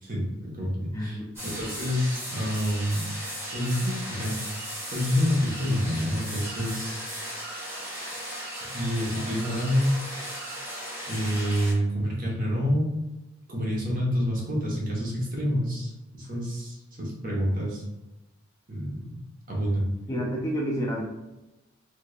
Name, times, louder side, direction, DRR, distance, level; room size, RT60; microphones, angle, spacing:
voice 1, 0.0-3.1 3.5-4.6 4.9-7.2 8.7-10.4 11.1-12.9 13.5-17.8 18.7-19.2 19.5-19.9, equal, 40° right, -4 dB, 1.1 m, -28 dB
voice 2, 0.9-1.3 20.1-21.0, equal, 15° left, -3 dB, 0.5 m, -29 dB
sound 1, 1.4-11.7, equal, 10° right, 1.2 m, -36 dB
3.3 x 3.2 x 2.4 m, 1.0 s
head